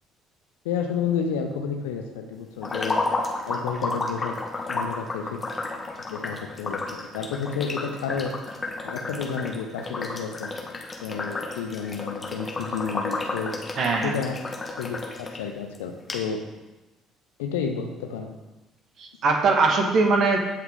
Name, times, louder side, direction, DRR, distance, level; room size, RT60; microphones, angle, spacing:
voice 1, 0.6-3.0 3.4-4.4 4.7-5.4 6.1-8.3 8.8-10.5 11.0-13.5 14.0-14.4 14.8-16.4 17.4-18.3, left 6 dB, 70° left, 4 dB, 1.0 m, -31 dB
sound 1, 2.6-15.4 15.7-15.8 16.1-16.2, left 3 dB, 25° left, 1.8 m, -32 dB
voice 2, 13.8-14.1 19.0-20.4, right 3 dB, 50° right, 2 dB, 1.8 m, -21 dB
16.0 x 6.1 x 3.8 m, 1.1 s
figure-of-eight pair, 50°, 0 cm